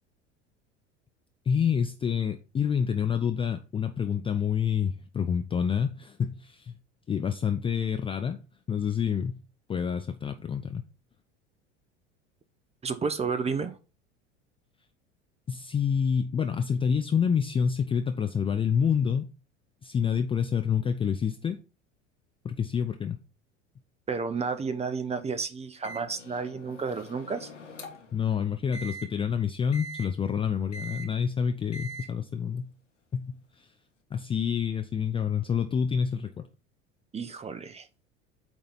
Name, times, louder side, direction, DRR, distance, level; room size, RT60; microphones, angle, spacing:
voice 1, 1.5-6.7 7.1-8.4 8.7-9.4 9.7-10.8 15.5-19.3 19.8-21.6 22.4-23.2 28.1-32.7 33.1-33.7 34.1-36.5, left 7 dB, 15° left, 0.4 m, -28 dB
voice 2, 12.8-13.8 24.1-27.5 37.1-37.9, right 5 dB, 15° right, 0.8 m, -31 dB
Microwave oven, 25.8-28.2 28.7-29.0 29.7-30.1 30.7-31.1 31.7-32.1, right 2 dB, 85° left, 1.2 m, -42 dB
8.5 x 2.9 x 5.5 m
figure-of-eight pair, 75°, 36 cm